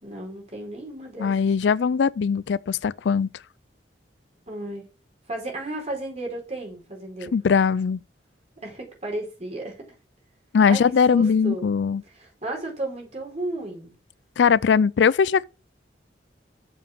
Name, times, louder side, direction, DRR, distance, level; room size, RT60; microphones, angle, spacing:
voice 1, 0.0-1.3 4.5-4.8 5.3-7.3 8.6-9.8 10.7-10.8 11.1-11.7 12.1-14.0, right 2 dB, 35° right, 4.3 m, -33 dB
voice 2, 1.2-3.3 7.2-8.0 10.5-12.0 14.4-15.4, left 6 dB, 70° left, 0.4 m, -20 dB
7.1 x 5.8 x 6.4 m
head